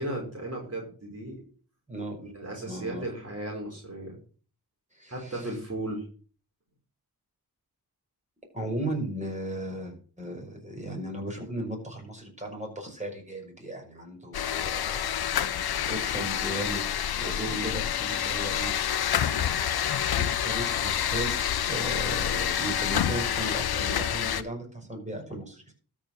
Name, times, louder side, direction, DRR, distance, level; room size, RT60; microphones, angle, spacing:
voice 1, 0.0-1.4 2.2-4.2 5.1-6.1 17.4-17.8, right 1 dB, 40° right, -1 dB, 5.1 m, -35 dB
voice 2, 1.9-2.2 2.6-3.1 4.9-5.5 8.5-15.3 15.9-16.8 17.2-18.7 20.1-21.3 21.7-25.7, right 1 dB, 20° right, 1 dB, 5.8 m, -36 dB
sound 1, 14.3-24.4, left 9 dB, 70° left, 0.9 m, -28 dB
13.0 x 6.2 x 6.4 m, 0.42 s
supercardioid pair, 40°, 39 cm